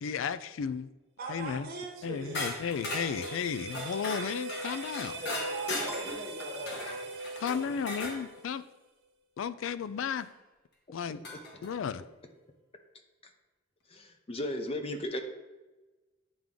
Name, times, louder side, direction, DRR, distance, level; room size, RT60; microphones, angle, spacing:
voice 1, 0.0-0.9 1.3-1.7 2.0-5.2 7.4-8.6 9.4-10.3 10.9-11.2 11.6-12.0, left 7 dB, 75° left, 14 dB, 0.3 m, -34 dB
voice 2, 1.2-2.4 5.1-7.1, right 2 dB, 50° right, 0 dB, 1.0 m, -41 dB
sound 1, 1.7-8.7, right 1 dB, 80° right, 1.3 m, -42 dB
sound 2, 2.3-8.2 10.2-10.3 11.2-11.7, left 1 dB, 60° left, 1.3 m, -38 dB
Piano, 5.8-7.4, right 2 dB, 10° right, 0.4 m, -48 dB
voice 3, 13.9-15.2, left 1 dB, 30° left, 5 dB, 0.6 m, -35 dB
8.9 x 3.5 x 3.8 m, 1.1 s
head